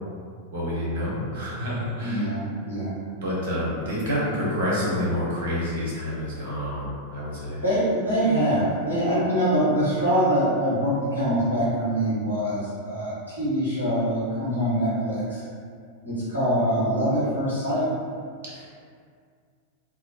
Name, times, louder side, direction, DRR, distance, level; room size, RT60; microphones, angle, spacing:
voice 1, 0.5-2.3 3.2-7.6 18.4-18.7, equal, 60° right, -6 dB, 0.7 m, -28 dB
voice 2, 2.0-3.0 7.6-15.4 16.0-17.9, equal, 85° left, -11 dB, 1.1 m, -24 dB
2.3 x 2.0 x 2.6 m, 2.1 s
figure-of-eight pair, 90°, 0 cm